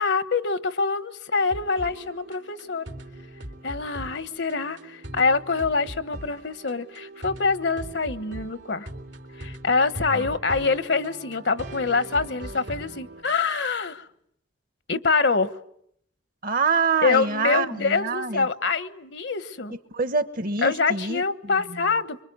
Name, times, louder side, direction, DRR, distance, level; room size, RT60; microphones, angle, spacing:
voice 1, 0.0-2.9 3.6-8.9 9.4-14.1 14.9-15.5 17.0-19.8 20.6-22.2, left 4 dB, 65° left, 14 dB, 1.2 m, -25 dB
sound 1, 1.4-13.2, right 1 dB, 85° right, 3.8 m, -40 dB
voice 2, 16.4-18.5 19.9-21.2, right 4 dB, 50° right, 13 dB, 1.3 m, -25 dB
25.5 x 23.5 x 9.4 m, 0.71 s
head